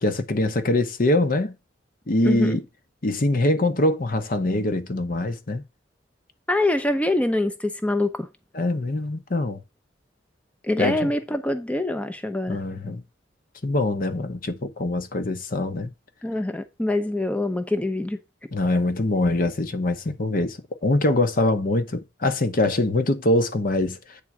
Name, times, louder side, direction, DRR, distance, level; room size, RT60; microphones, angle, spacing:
voice 1, 0.0-1.6 2.1-2.6 3.0-5.6 8.5-9.6 10.8-11.1 12.5-13.0 13.6-15.9 18.5-24.2, left 2 dB, 50° left, 0.9 m, -23 dB
voice 2, 2.2-2.6 6.5-8.3 10.6-12.6 16.2-18.2, left 1 dB, 5° left, 0.6 m, -24 dB
8.5 x 3.8 x 6.0 m
head